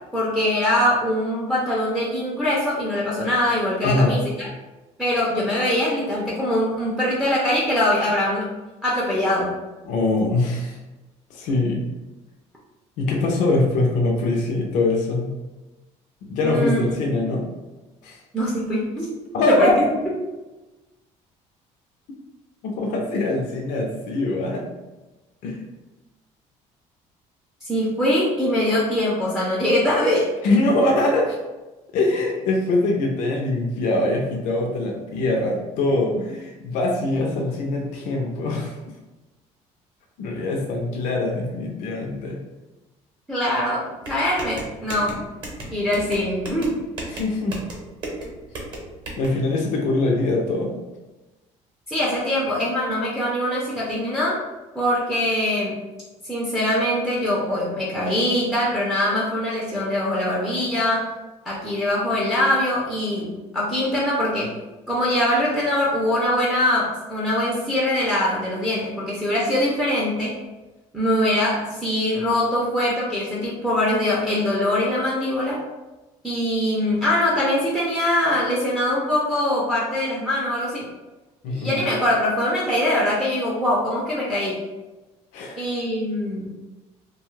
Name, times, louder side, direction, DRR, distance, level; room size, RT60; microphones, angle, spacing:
voice 1, 0.1-4.5 5.0-8.5 8.8-9.5 16.4-17.0 18.3-19.1 19.5-19.8 27.6-30.3 43.3-45.2 45.7-46.8 51.9-54.4 54.7-55.8 56.3-61.1 61.5-64.6 64.9-70.4 70.9-75.6 76.2-80.9 81.5-84.6 85.6-86.5, left 1 dB, 5° right, -6 dB, 0.4 m, -23 dB
voice 2, 9.8-10.8 11.3-11.8 13.0-15.3 16.2-17.5 18.0-18.2 19.3-19.8 22.6-24.6 25.4-25.6 30.4-31.4 31.9-38.7 40.2-42.4 47.1-47.6 49.2-50.7 81.4-81.8 85.3-85.7, left 2 dB, 70° left, 0 dB, 0.5 m, -23 dB
sound 1, 44.0-49.3, right 2 dB, 35° right, 0.8 m, -35 dB
2.7 x 2.3 x 3.0 m, 1.1 s
cardioid pair, 165°, 13 cm